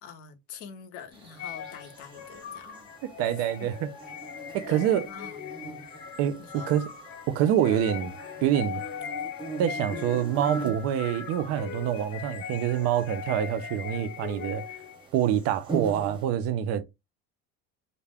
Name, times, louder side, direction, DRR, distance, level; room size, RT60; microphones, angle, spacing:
voice 1, 0.0-2.9 3.6-3.7 4.7-5.8 6.4-6.7, left 7 dB, 50° left, 0.6 m, -45 dB
sound 1, 1.1-16.3, right 4 dB, 15° right, 0.7 m, -43 dB
sound 2, 1.4-15.0, left 7 dB, 85° left, 0.9 m, -40 dB
voice 2, 3.2-3.9 4.5-5.0 6.2-6.9 7.3-8.1 8.4-8.8 9.6-14.6 15.1-16.8, right 10 dB, 50° right, 0.4 m, -26 dB
2.3 x 2.0 x 3.4 m
cardioid pair, 150°, 30 cm